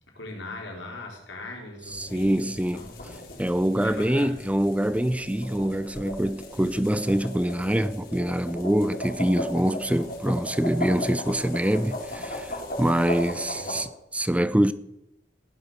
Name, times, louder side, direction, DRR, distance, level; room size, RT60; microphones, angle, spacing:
voice 1, 0.1-3.0 3.8-4.4 13.2-13.8, left 2 dB, 90° left, 4.5 m, -40 dB
sound 1, 1.8-13.8, left 1 dB, 55° left, 4.0 m, -37 dB
voice 2, 1.9-2.8 3.4-14.7, right 1 dB, 5° right, 0.5 m, -25 dB
16.5 x 11.0 x 6.6 m
head